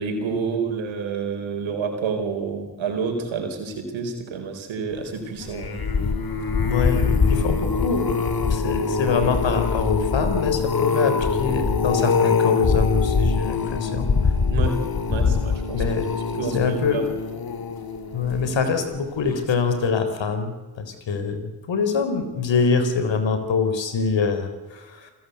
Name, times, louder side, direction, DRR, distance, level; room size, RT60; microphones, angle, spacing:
voice 1, 0.0-5.8 14.5-15.8 16.4-17.0, right 5 dB, 85° right, 4 dB, 4.5 m, -29 dB
sound 1, 5.4-18.8 19.3-19.6 19.9-20.0, left 5 dB, 50° left, 2.3 m, -23 dB
voice 2, 6.6-8.1 8.5-14.1 15.2-15.4 15.7-16.1 16.5-17.0 18.1-25.1, left 5 dB, 70° left, 9 dB, 3.9 m, -24 dB
28.5 x 16.0 x 8.2 m, 1.3 s
supercardioid pair, 40°, 45 cm